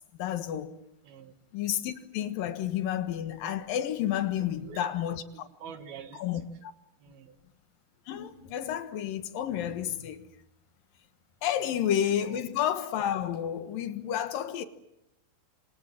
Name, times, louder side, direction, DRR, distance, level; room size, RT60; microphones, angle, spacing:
voice 1, 0.2-0.7 1.5-5.5 6.2-6.7 8.1-10.3 11.4-14.6, left 10 dB, 75° left, 3.1 m, -31 dB
voice 2, 1.0-1.3 4.4-4.9 5.3-6.4 7.0-7.4 11.5-11.8 12.2-12.5, right 8 dB, 90° right, 3.9 m, -47 dB
27.0 x 26.0 x 7.6 m
omnidirectional pair, 4.2 m